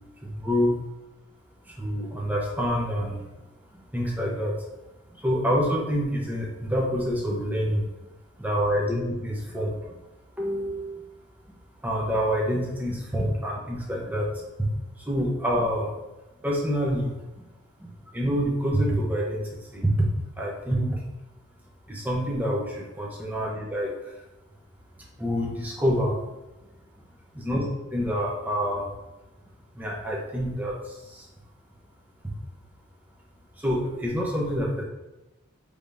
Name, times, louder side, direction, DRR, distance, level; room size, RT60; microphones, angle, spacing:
voice 1, 0.2-0.7 1.7-3.2 3.9-4.5 5.2-7.8 8.4-9.9 10.4-11.0 11.8-14.7 15.1-15.9 16.4-17.5 17.8-17.9 18.1-19.4 19.7-20.1 20.4-21.0 21.9-24.1 25.2-26.2 27.3-27.6 27.9-28.9 29.7-31.3 33.6-34.8, equal, 10° right, -3 dB, 0.7 m, -27 dB
4.9 x 3.4 x 2.6 m, 1.0 s
head